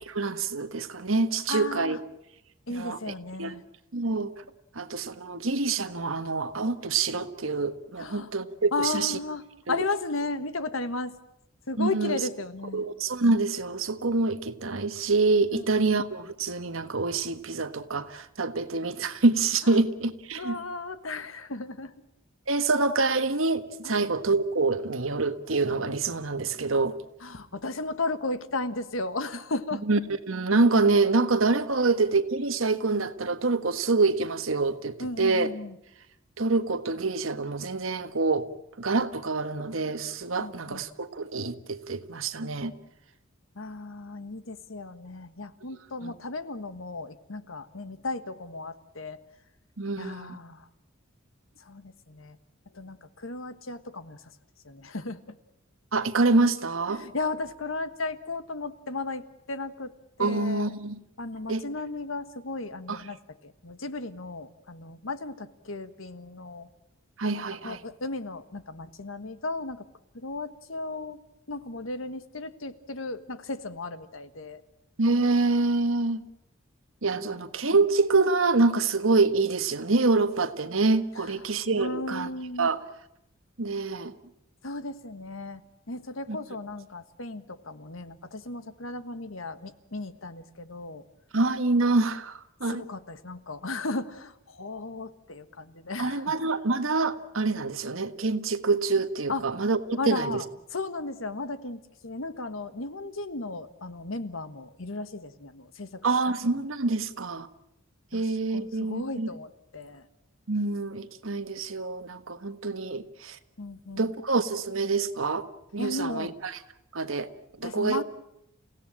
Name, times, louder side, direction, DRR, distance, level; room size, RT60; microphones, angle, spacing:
voice 1, 0.0-2.0 2.7-3.1 3.4-3.5 3.9-4.3 4.7-9.2 9.7-9.8 11.8-12.2 12.7-20.6 22.5-27.0 29.9-30.0 30.3-35.5 36.4-38.5 38.8-42.7 46.0-46.1 49.8-50.4 55.9-57.0 60.2-61.0 61.5-61.6 62.9-63.0 67.2-67.8 75.0-76.2 77.0-82.3 82.6-82.8 83.6-84.1 86.3-86.4 91.3-92.8 96.0-100.4 106.0-107.5 108.1-109.3 110.5-113.4 114.0-115.4 115.7-116.5 116.9-117.3 117.6-118.0, right 3 dB, 80° right, 10 dB, 1.5 m, -26 dB
voice 2, 1.5-2.0 2.7-3.6 8.0-8.3 8.7-11.2 11.7-12.8 15.5-15.7 19.6-19.8 20.4-21.9 23.8-24.1 27.2-29.9 35.0-35.8 40.4-40.8 43.5-49.2 50.0-50.7 51.6-52.4 52.7-54.3 54.6-55.4 56.9-59.9 60.2-60.7 61.2-66.7 67.6-69.9 70.1-71.2 71.5-74.6 77.2-77.4 81.2-82.7 84.6-91.0 92.6-96.3 99.3-99.4 100.0-100.5 100.7-106.6 108.1-108.2 108.5-110.1 113.6-114.1 115.8-116.3 117.6-118.0, left 3 dB, 80° left, 11 dB, 1.5 m, -35 dB
29.5 x 17.0 x 8.9 m, 0.81 s
head